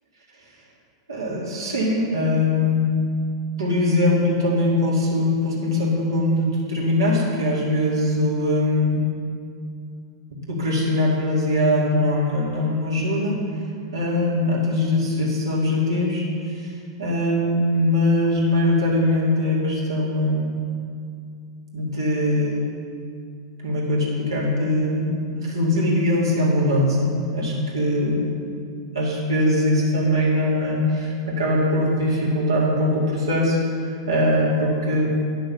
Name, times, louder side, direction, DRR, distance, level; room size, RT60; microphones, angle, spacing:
voice 1, 1.1-2.9 3.6-9.1 10.5-13.3 13.9-16.2 16.6-16.7 17.0-20.6 21.7-22.6 23.6-28.2 28.9-33.6 34.1-35.1, left 1 dB, 85° right, -5 dB, 2.3 m, -21 dB
9.8 x 6.2 x 5.4 m, 2.3 s
hypercardioid pair, 95°, 2 cm